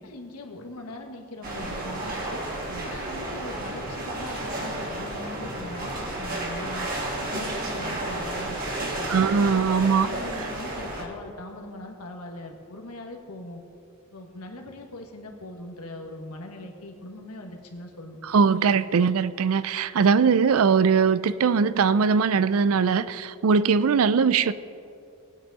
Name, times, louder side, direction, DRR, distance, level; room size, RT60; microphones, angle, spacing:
voice 1, 0.0-2.5 2.8-6.9 7.2-8.6 8.9-13.6 14.1-18.2, left 1 dB, 85° left, 2 dB, 1.6 m, -40 dB
sound 1, 1.4-11.0, right 1 dB, 40° right, 2.3 m, -32 dB
voice 2, 9.1-10.1 18.3-24.5, right 5 dB, 70° right, 15 dB, 0.4 m, -21 dB
19.0 x 9.1 x 4.1 m, 2.5 s
head